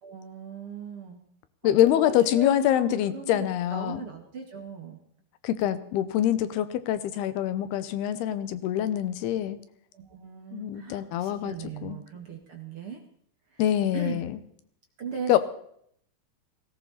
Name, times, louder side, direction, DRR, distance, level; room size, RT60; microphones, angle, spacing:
voice 1, 0.0-1.2 1.6-5.0 9.9-13.0 13.5-13.6 13.9-14.2 15.0-15.4, right 5 dB, 45° right, 2 dB, 2.2 m, -39 dB
voice 2, 1.6-4.0 5.4-9.6 10.5-11.5 11.8-12.0 13.6-14.4 15.3-15.4, left 11 dB, 85° left, 13 dB, 3.0 m, -25 dB
18.0 x 17.0 x 4.2 m, 0.67 s
omnidirectional pair, 4.5 m